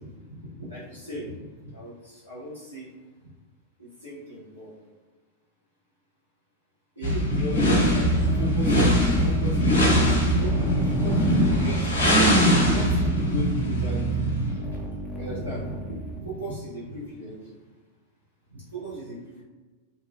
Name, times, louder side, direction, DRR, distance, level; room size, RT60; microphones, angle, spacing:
voice 1, 0.0-1.4 1.6-3.0 3.2-3.3 3.8-4.7 7.0-11.9 12.7-14.4 15.1-17.5 18.5-19.4, right 1 dB, 85° right, -11 dB, 0.7 m, -38 dB
sound 1, 7.0-14.6, equal, 70° left, 0.6 m, -22 dB
sound 2, 8.0-16.2, right 4 dB, 10° left, 0.4 m, -31 dB
2.5 x 2.1 x 2.6 m, 1.3 s
figure-of-eight pair, 90°, 0 cm